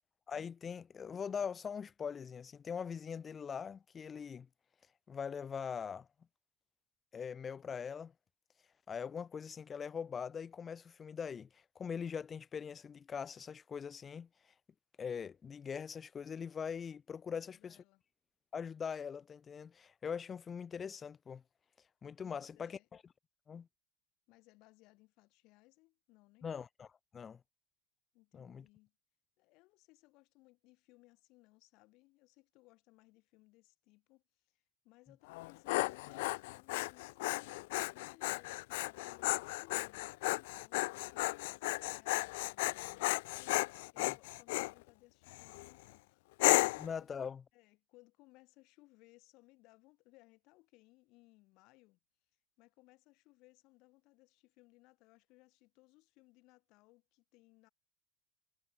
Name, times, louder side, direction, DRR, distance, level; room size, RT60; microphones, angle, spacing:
voice 1, 0.3-4.5 5.1-6.1 7.1-8.1 8.9-14.3 15.0-17.8 18.5-21.4 22.0-23.0 23.5-23.7 26.4-26.9 27.1-27.4 28.3-28.7 44.0-44.1 46.8-47.4, left 6 dB, 20° left, 1.2 m, -42 dB
voice 2, 17.3-18.0 22.2-22.9 24.3-26.5 28.1-28.9 29.4-43.1 43.9-46.3 47.5-52.0 52.6-57.7, left 22 dB, 50° left, 7.3 m, -65 dB
Dog, 35.3-44.7 45.3-45.7 46.4-46.9, left 22 dB, 70° left, 0.3 m, -34 dB
supercardioid pair, 135°, 0 cm